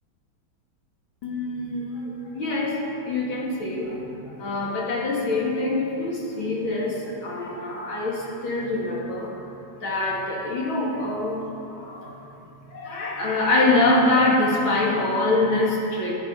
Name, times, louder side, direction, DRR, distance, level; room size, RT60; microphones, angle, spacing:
voice 1, 1.2-2.8 3.1-9.3 9.8-11.4 11.7-12.1 12.7-16.1, left 2 dB, 75° left, -4 dB, 3.0 m, -24 dB
15.0 x 9.7 x 5.3 m, 2.9 s
omnidirectional pair, 2.2 m